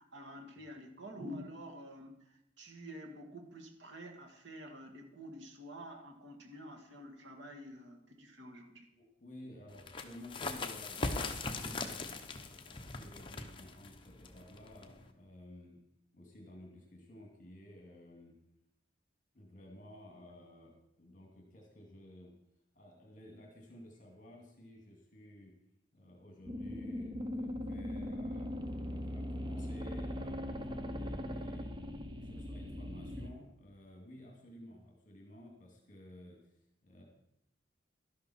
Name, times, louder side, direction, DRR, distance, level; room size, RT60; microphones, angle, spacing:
voice 1, 0.0-8.9, equal, 80° right, 2 dB, 2.0 m, -49 dB
voice 2, 8.9-12.1 12.5-15.8 16.1-18.3 19.3-22.3 22.7-25.5 25.9-31.7 32.2-37.0, left 1 dB, 45° left, 0 dB, 2.3 m, -54 dB
sound 1, 9.7-15.1, left 3 dB, 25° left, 0.9 m, -40 dB
sound 2, 26.5-33.3, left 1 dB, 25° right, 0.8 m, -40 dB
12.0 x 11.5 x 4.3 m, 0.78 s
head